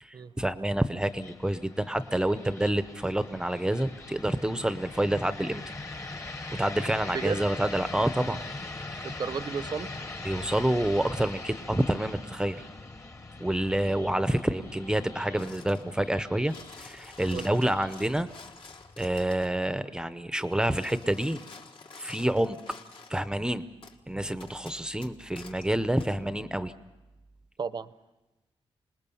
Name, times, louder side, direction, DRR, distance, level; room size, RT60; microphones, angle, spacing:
voice 1, 0.0-5.6 6.6-8.4 10.2-12.6 13.4-18.3 19.0-21.4 22.0-22.6 23.1-23.6 24.1-26.7, right 1 dB, 5° right, 11 dB, 0.7 m, -28 dB
sound 1, 1.0-20.0, left 2 dB, 30° left, 1.4 m, -42 dB
voice 2, 9.0-9.9 17.3-17.5 27.6-27.9, right 5 dB, 45° right, 14 dB, 0.7 m, -33 dB
sound 2, 15.4-15.9 16.3-19.6 20.4-23.3 23.8-24.0 24.4-25.7 26.0-26.1, left 4 dB, 55° left, 1.7 m, -49 dB
27.5 x 20.0 x 7.0 m, 1.1 s
wide cardioid pair, 160°, 11 cm